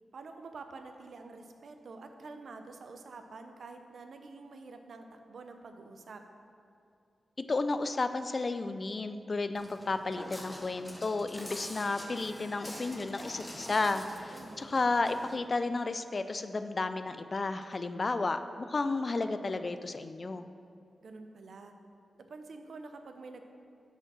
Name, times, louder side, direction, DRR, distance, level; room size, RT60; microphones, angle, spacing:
voice 1, 0.1-6.2 14.3-14.8 21.0-21.7 22.1-23.4, right 3 dB, 70° right, 6 dB, 0.6 m, -48 dB
voice 2, 7.5-20.5, left 3 dB, 35° left, 10 dB, 0.3 m, -32 dB
Walk footsteps, 9.5-15.3, equal, 5° left, 0.7 m, -45 dB
6.4 x 5.0 x 6.1 m, 2.4 s
wide cardioid pair, 150°, 0 cm